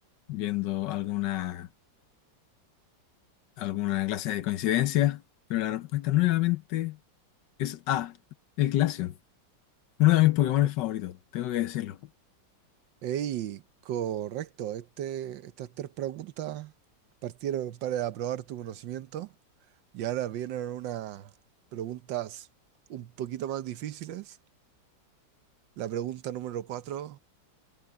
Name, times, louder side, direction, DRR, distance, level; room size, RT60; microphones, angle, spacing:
voice 1, 0.3-1.7 3.6-5.2 5.5-7.0 7.6-8.2 8.6-9.1 10.0-12.0, left 15 dB, 75° left, 1.4 m, -26 dB
voice 2, 13.0-16.7 17.2-19.3 19.9-21.3 21.7-22.5 22.9-24.4 25.8-27.2, right 11 dB, 90° right, 1.6 m, -34 dB
omnidirectional pair, 1.9 m